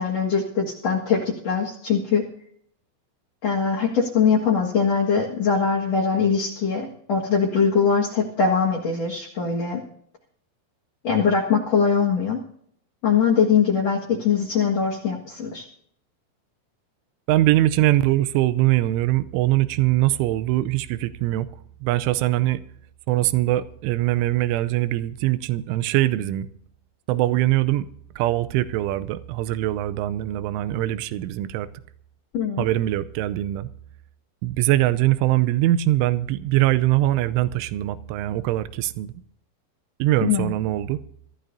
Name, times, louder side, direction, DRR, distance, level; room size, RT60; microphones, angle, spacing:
voice 1, 0.0-2.2 3.4-9.8 11.0-12.4 13.0-15.6 32.3-32.6 40.2-40.6, left 6 dB, 75° left, 1.5 m, -22 dB
voice 2, 17.3-21.5 21.8-22.6 23.1-26.5 27.1-27.9 28.2-31.7 32.6-33.7 34.4-39.1 40.0-41.0, right 15 dB, 80° right, 2.9 m, -22 dB
23.0 x 14.5 x 2.7 m
omnidirectional pair, 6.0 m